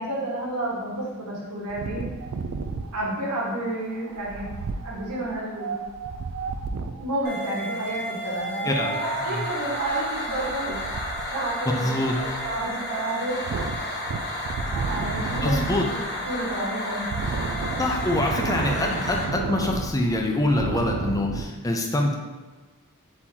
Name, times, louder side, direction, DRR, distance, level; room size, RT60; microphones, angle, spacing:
voice 1, 0.0-2.0 2.9-4.5 4.8-5.7 7.0-10.8 11.3-13.4 14.8-15.8 16.3-17.1, right 1 dB, 90° right, -5 dB, 1.3 m, -30 dB
Wind, 1.7-7.1 8.2-21.4, right 4 dB, 65° right, 0.3 m, -33 dB
sound 1, 7.2-19.2, left 1 dB, 45° left, 1.0 m, -32 dB
voice 2, 11.8-12.2 15.4-15.9 17.8-22.1, left 1 dB, 15° left, 1 dB, 0.4 m, -25 dB
4.2 x 2.9 x 3.7 m, 1.3 s
head